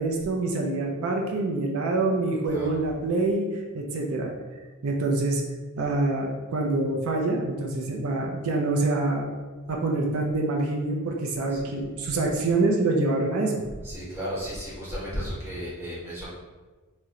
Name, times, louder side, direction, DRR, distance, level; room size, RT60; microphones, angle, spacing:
voice 1, 0.0-3.5 3.7-4.3 4.8-5.4 5.8-9.3 9.7-13.5, right 2 dB, 75° right, 0 dB, 0.4 m, -26 dB
voice 2, 11.5-11.8 13.8-16.3, equal, 10° right, -8 dB, 0.9 m, -34 dB
2.8 x 2.1 x 3.6 m, 1.3 s
head